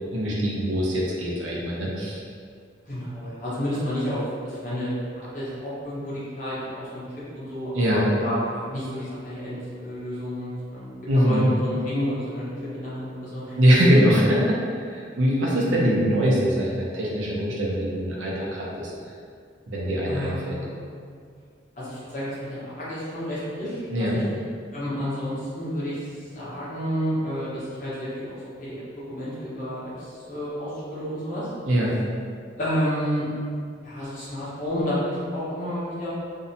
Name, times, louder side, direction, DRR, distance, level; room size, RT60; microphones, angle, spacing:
voice 1, 0.1-2.2 7.7-8.0 11.1-11.5 13.6-14.6 14.9-18.9 19.7-20.6 23.9-24.2 31.7-31.9, equal, 85° right, -4 dB, 0.6 m, -22 dB
voice 2, 2.8-7.0 7.3-13.6 15.1-15.2 20.0-21.0 21.8-23.8 24.1-24.2 24.7-26.0 26.3-31.5 32.6-33.2 33.8-36.1, equal, 45° left, -10 dB, 0.8 m, -30 dB
2.6 x 2.1 x 2.6 m, 2.2 s
head